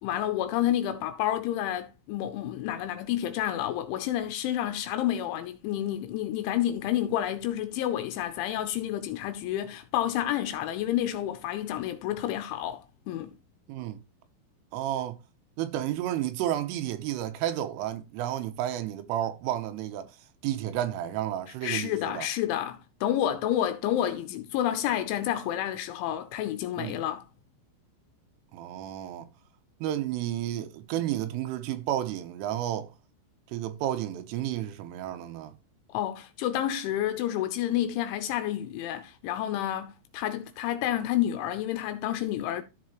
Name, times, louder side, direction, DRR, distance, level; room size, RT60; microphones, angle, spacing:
voice 1, 0.0-13.3 21.6-27.2 35.9-42.6, left 12 dB, 80° left, 2.9 m, -29 dB
voice 2, 13.7-14.0 14.7-15.2 15.6-20.2 20.4-22.3 26.8-27.0 28.5-29.3 29.8-32.9 33.5-35.6, right 12 dB, 90° right, 3.3 m, -31 dB
14.0 x 4.8 x 3.1 m
omnidirectional pair, 5.9 m